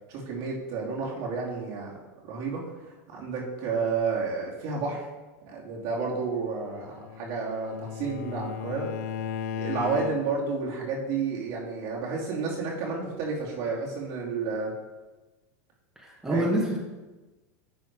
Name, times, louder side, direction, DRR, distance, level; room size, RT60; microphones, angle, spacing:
voice 1, 0.1-2.0 2.2-2.6 3.1-5.1 5.5-8.9 9.5-14.7 16.3-16.4, right 4 dB, 60° right, -4 dB, 2.8 m, -31 dB
Bowed string instrument, 6.6-10.5, left 7 dB, 75° left, 0.6 m, -36 dB
voice 2, 16.0-16.8, right 1 dB, 5° right, -4 dB, 1.9 m, -26 dB
10.0 x 4.4 x 4.7 m, 1.2 s
supercardioid pair, 115°, 8 cm